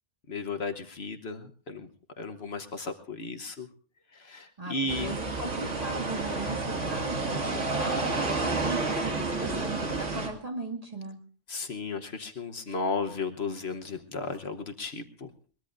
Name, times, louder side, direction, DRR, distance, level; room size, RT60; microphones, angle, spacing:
voice 1, 0.3-1.9 2.2-3.7 4.1-5.1 11.5-15.3, left 3 dB, 60° left, 7 dB, 1.3 m, -34 dB
voice 2, 4.6-11.2, right 2 dB, 30° right, 1 dB, 2.3 m, -38 dB
sound 1, 4.9-10.3, right 3 dB, 75° right, 2.6 m, -30 dB
22.0 x 21.0 x 2.6 m, 0.42 s
omnidirectional pair, 1.3 m